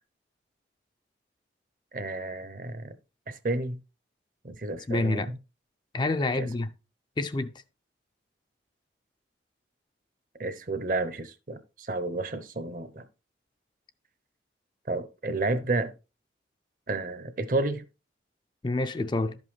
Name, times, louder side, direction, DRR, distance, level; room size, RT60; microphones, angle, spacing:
voice 1, 1.9-2.9 3.3-3.8 4.4-5.2 6.3-6.5 10.4-13.0 14.9-15.9 16.9-17.8, right 2 dB, 50° right, 0.7 m, -31 dB
voice 2, 4.9-5.3 5.9-6.7 7.2-7.5 18.6-19.4, left 2 dB, 25° left, 0.4 m, -27 dB
11.5 x 5.3 x 3.2 m
head